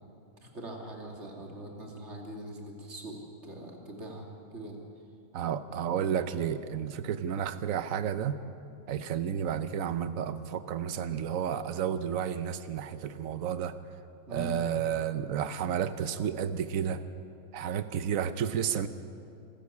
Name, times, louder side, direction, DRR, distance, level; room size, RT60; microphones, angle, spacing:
voice 1, 0.4-4.8 14.3-14.5, right 1 dB, 50° right, 1 dB, 2.8 m, -42 dB
voice 2, 5.3-8.4 8.9-13.7 14.3-17.0 17.5-18.9, right 8 dB, 75° right, 12 dB, 1.2 m, -31 dB
26.5 x 13.0 x 8.5 m, 2.6 s
omnidirectional pair, 1.4 m